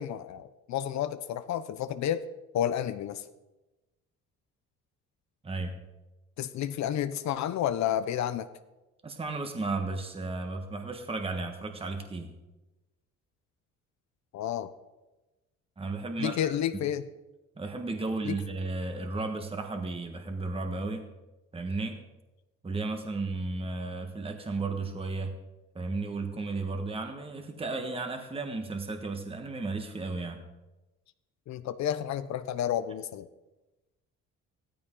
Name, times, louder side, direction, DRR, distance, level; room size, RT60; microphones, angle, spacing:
voice 1, 0.0-2.2 2.5-3.2 6.4-8.5 14.3-14.7 16.2-17.1 18.2-18.4 31.5-33.3, left 10 dB, 65° left, 11 dB, 0.7 m, -31 dB
voice 2, 5.4-5.8 9.0-12.3 15.8-16.5 17.6-21.0 21.5-22.0 22.6-25.4 25.7-30.4, right 3 dB, 20° right, 5 dB, 1.5 m, -34 dB
15.5 x 14.0 x 3.8 m, 1.1 s
cardioid pair, 110°, 30 cm